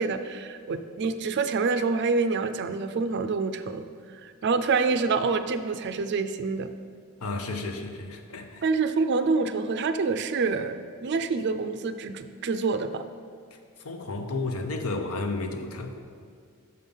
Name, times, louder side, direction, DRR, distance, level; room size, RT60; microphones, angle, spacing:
voice 1, 0.0-3.9 4.1-6.7 8.6-13.0, right 4 dB, 50° right, 10 dB, 0.4 m, -27 dB
voice 2, 7.2-8.6 13.8-16.1, left 3 dB, 75° left, 5 dB, 0.8 m, -32 dB
6.6 x 5.5 x 5.4 m, 2.2 s
head